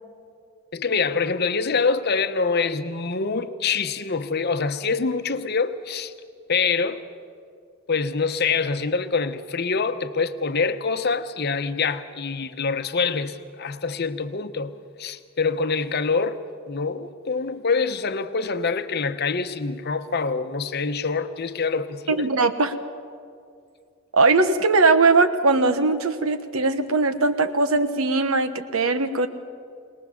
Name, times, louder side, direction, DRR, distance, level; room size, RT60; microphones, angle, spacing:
voice 1, 0.7-6.1 6.5-7.0 7.9-14.7 15.0-16.4 16.7-22.3, left 4 dB, 50° left, 0.9 m, -25 dB
voice 2, 22.1-22.7 24.1-29.3, right 3 dB, 75° right, 1.2 m, -20 dB
22.0 x 19.5 x 7.1 m
head